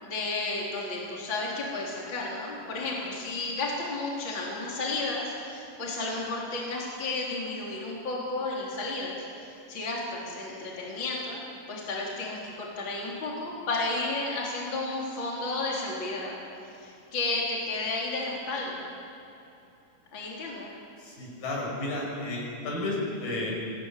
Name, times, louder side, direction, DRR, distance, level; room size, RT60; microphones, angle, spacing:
voice 1, 0.0-11.4 11.7-16.4 16.7-18.8 20.1-20.7, left 2 dB, 35° left, -3 dB, 4.3 m, -32 dB
voice 2, 21.0-23.5, left 2 dB, 75° left, -2 dB, 7.9 m, -32 dB
24.0 x 18.5 x 10.0 m, 2.9 s
omnidirectional pair, 4.0 m